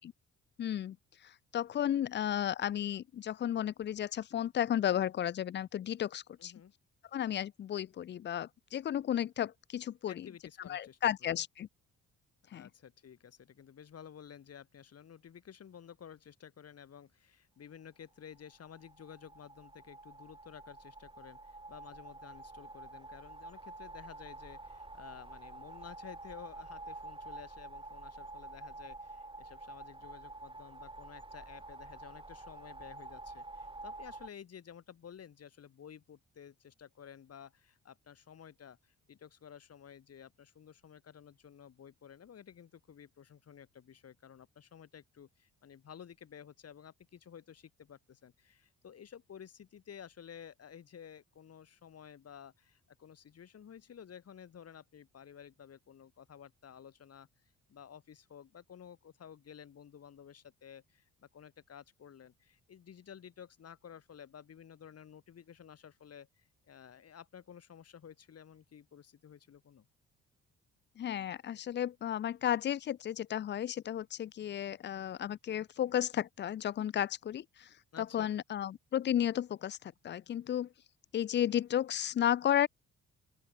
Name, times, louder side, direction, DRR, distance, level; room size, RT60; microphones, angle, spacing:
voice 1, 0.6-1.0 1.2-6.5 7.1-10.3 10.7-11.7 12.5-12.7 71.0-77.7 78.0-80.7 81.1-82.7, left 10 dB, 40° left, 0.4 m, -33 dB
voice 2, 6.4-6.7 10.1-11.4 12.5-57.3 57.7-69.9 77.9-78.3, left 8 dB, 55° left, 4.1 m, -53 dB
sound 1, 18.4-34.3, right 2 dB, 15° right, 8.0 m, -48 dB
open air
cardioid pair, 90°, 30 cm